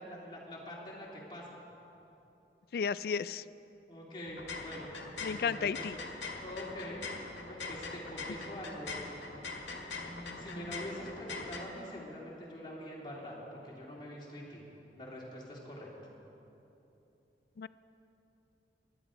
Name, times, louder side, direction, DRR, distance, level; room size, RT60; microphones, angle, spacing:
voice 1, 0.0-1.5 3.9-4.9 5.2-5.9 6.4-7.0 7.5-9.4 10.0-14.6 15.0-15.9, equal, 25° left, -4 dB, 2.7 m, -44 dB
voice 2, 2.7-3.4 5.2-5.9 17.6-17.7, left 6 dB, 55° left, 17 dB, 0.3 m, -33 dB
sound 1, 4.3-11.6, left 3 dB, 90° left, 1.7 m, -42 dB
19.0 x 11.5 x 5.0 m, 3.0 s
head